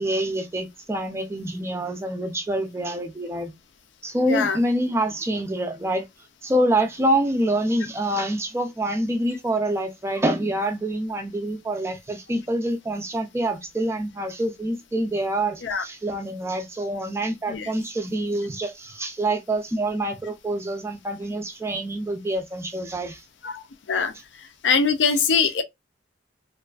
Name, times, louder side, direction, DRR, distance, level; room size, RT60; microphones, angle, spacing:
voice 1, 0.0-3.5 4.0-6.0 6.4-23.2 25.1-25.5, right 1 dB, 15° right, 0.3 m, -26 dB
voice 2, 24.6-25.6, left 5 dB, 85° left, 0.5 m, -22 dB
2.4 x 2.3 x 2.3 m
head